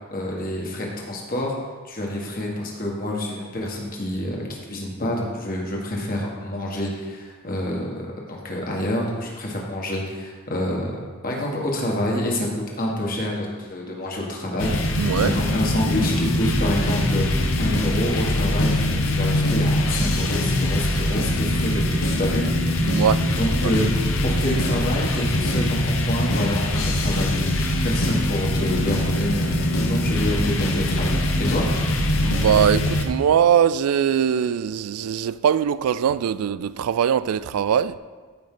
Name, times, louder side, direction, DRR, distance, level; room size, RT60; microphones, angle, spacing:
voice 1, 0.1-1.5 1.8-23.0 23.4-23.9 24.2-31.7, left 1 dB, 40° left, 1.6 m, -27 dB
sound 1, 14.6-33.0, left 1 dB, 65° left, 1.0 m, -22 dB
voice 2, 15.0-15.3 22.8-23.2 23.6-23.7 32.2-37.9, right 8 dB, 90° right, 0.3 m, -21 dB
14.0 x 5.3 x 3.8 m
head